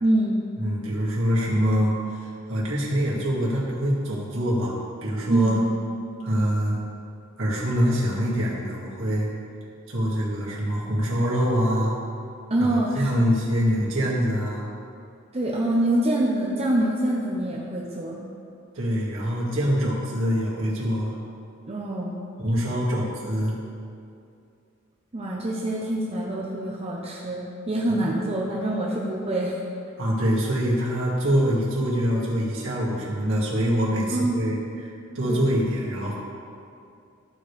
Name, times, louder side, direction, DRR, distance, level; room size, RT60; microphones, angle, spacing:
voice 1, 0.0-0.4 5.3-5.6 12.5-13.1 15.3-18.2 21.7-22.2 25.1-29.6 34.1-34.6 35.3-35.5, right 1 dB, 30° right, -3 dB, 0.7 m, -25 dB
voice 2, 0.6-4.8 5.0-5.6 6.2-6.8 7.4-9.3 9.9-12.0 12.7-14.7 18.7-21.2 22.4-23.5 27.9-28.1 30.0-36.1, equal, 65° right, -6 dB, 2.1 m, -24 dB
14.0 x 5.1 x 3.3 m, 2.5 s
head